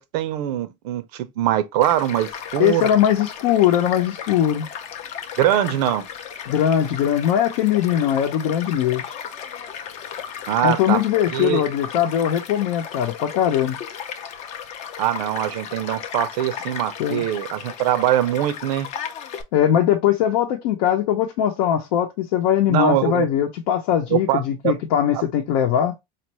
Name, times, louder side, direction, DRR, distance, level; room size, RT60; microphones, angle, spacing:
voice 1, 0.0-2.9 5.4-6.1 10.5-11.0 11.3-11.6 15.0-18.9 22.7-23.3 24.1-24.7 25.1-25.2, right 12 dB, 85° right, 0.7 m, -22 dB
Child speech kid speaking / Stream / Car passing by, 1.8-19.4, left 8 dB, 35° left, 0.5 m, -35 dB
voice 2, 2.6-4.7 6.5-9.0 10.6-13.8 17.0-17.2 19.5-25.9, left 10 dB, 75° left, 0.8 m, -20 dB
4.3 x 2.5 x 3.0 m
cardioid pair, 170°, 20 cm